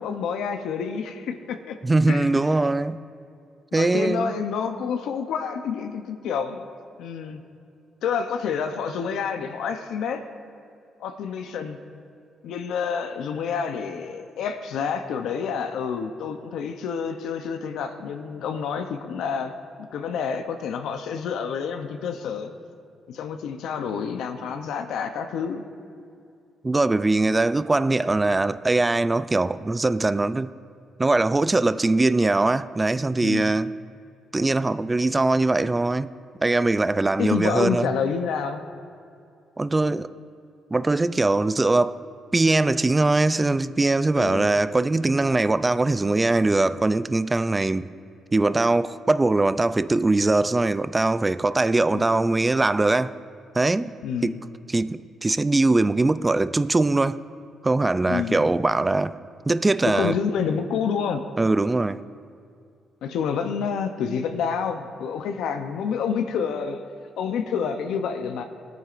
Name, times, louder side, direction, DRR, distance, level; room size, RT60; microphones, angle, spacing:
voice 1, 0.0-1.8 2.1-2.4 3.7-6.6 7.0-7.4 8.0-10.2 11.0-11.8 12.4-19.5 19.8-22.5 23.1-25.6 33.2-33.5 37.2-38.6 44.1-44.5 51.9-52.0 54.0-54.4 58.1-58.4 59.8-61.2 63.0-66.8 67.2-68.4, left 6 dB, 80° left, 0.6 m, -28 dB
voice 2, 1.8-3.0 3.7-4.3 26.6-30.5 31.0-33.7 34.3-36.1 36.4-37.9 39.6-40.1 40.7-42.0 42.3-47.9 48.3-53.1 53.5-53.9 54.2-54.3 54.7-57.2 57.6-59.1 59.5-60.2 61.4-62.0, right 2 dB, 20° right, 0.3 m, -21 dB
20.0 x 9.2 x 2.5 m
cardioid pair, 90°, 0 cm